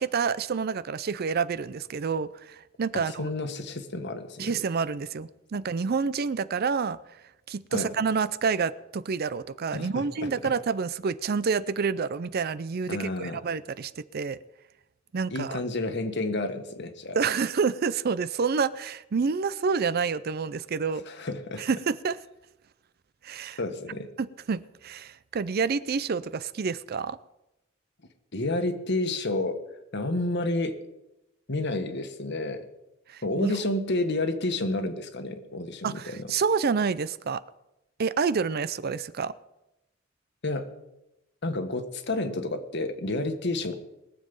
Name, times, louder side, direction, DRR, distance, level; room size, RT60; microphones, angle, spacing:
voice 1, 0.0-3.3 4.4-7.0 7.5-14.4 15.1-15.6 17.2-21.0 21.6-22.2 23.2-23.6 24.2-27.2 33.1-33.6 35.8-37.4 38.0-39.3, right 5 dB, 50° right, 0.5 m, -28 dB
voice 2, 2.9-4.5 7.7-7.9 9.7-10.3 12.9-13.4 15.3-17.2 21.1-21.6 23.6-24.1 28.3-29.6 29.9-30.7 31.5-32.6 33.2-36.2 40.4-40.7 41.4-43.8, left 2 dB, 60° left, 1.4 m, -30 dB
21.5 x 7.5 x 5.4 m
head